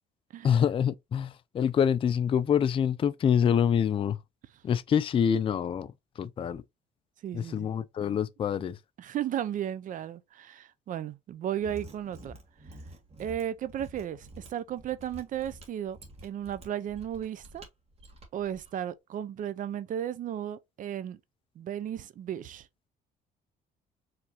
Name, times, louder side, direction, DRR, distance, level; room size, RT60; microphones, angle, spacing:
voice 1, 0.4-4.2 4.6-5.9 6.2-6.6 7.3-8.8, left 8 dB, 30° left, 0.4 m, -26 dB
voice 2, 7.2-7.7 9.0-12.4 13.2-16.0 16.2-17.7 18.3-21.2 21.6-22.7, right 10 dB, 50° right, 0.5 m, -34 dB
Mechanisms, 11.5-18.7, right 1 dB, 35° right, 1.8 m, -49 dB
4.8 x 3.4 x 2.9 m
cardioid pair, 110°, 17 cm